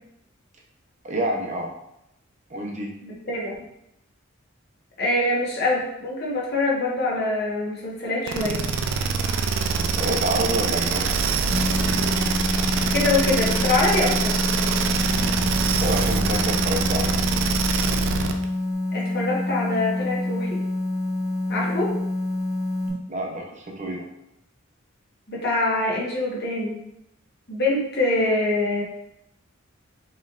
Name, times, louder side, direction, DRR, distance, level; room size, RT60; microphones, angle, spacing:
voice 1, 1.0-1.7 2.5-2.9 9.8-11.1 15.8-17.1 23.1-24.1, right 1 dB, 35° right, 0 dB, 0.7 m, -28 dB
voice 2, 3.0-3.5 5.0-8.6 12.8-14.4 18.9-20.6 21.5-21.9 25.3-26.8 27.5-28.8, left 2 dB, 50° left, -4 dB, 1.2 m, -24 dB
sound 1, 8.3-18.4, right 5 dB, 65° right, 0.4 m, -24 dB
sound 2, 11.5-22.9, left 2 dB, 75° left, 1.3 m, -27 dB
5.2 x 3.2 x 2.5 m, 0.82 s
head